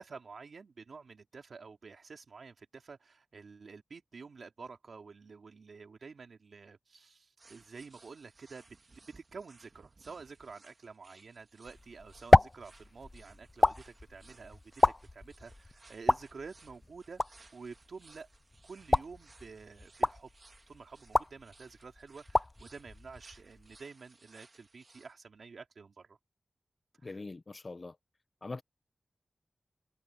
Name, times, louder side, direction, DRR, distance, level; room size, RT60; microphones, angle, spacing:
voice 1, 0.0-8.7 9.1-18.3 18.6-20.3 20.7-26.2 27.0-27.2, right 4 dB, 80° right, 2.9 m, -49 dB
sound 1, 7.4-25.1, right 3 dB, 45° right, 2.2 m, -62 dB
sound 2, 11.6-23.8, left 2 dB, 25° left, 0.5 m, -31 dB
voice 2, 27.0-28.0 28.4-28.6, left 3 dB, 45° left, 1.1 m, -42 dB
wide cardioid pair, 85°, 0 cm